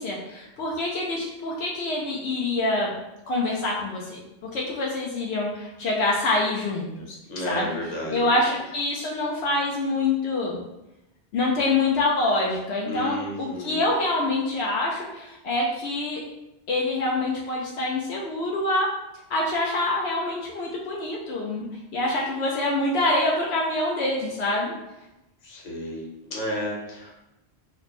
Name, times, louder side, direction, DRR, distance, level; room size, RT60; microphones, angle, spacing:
voice 1, 0.0-2.9 3.3-4.2 4.5-7.2 7.5-7.7 8.1-10.6 11.3-16.2 16.7-18.9 19.3-21.7 21.9-24.7, left 2 dB, 75° left, -2 dB, 0.8 m, -26 dB
voice 2, 7.3-8.3 12.8-13.8 25.4-27.1, left 1 dB, 45° left, -3 dB, 0.9 m, -32 dB
3.1 x 2.0 x 4.1 m, 0.93 s
omnidirectional pair, 1.1 m